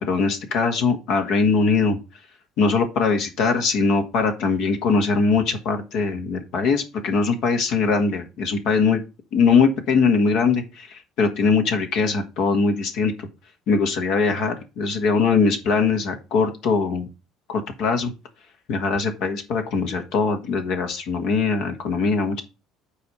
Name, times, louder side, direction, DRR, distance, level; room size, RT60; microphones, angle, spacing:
voice 1, 0.0-2.0 2.6-9.0 9.3-13.3 13.7-17.1 17.5-18.1 18.7-22.4, left 4 dB, 60° left, 5 dB, 1.6 m, -21 dB
8.9 x 3.4 x 5.3 m, 0.28 s
hypercardioid pair, 60°, 0 cm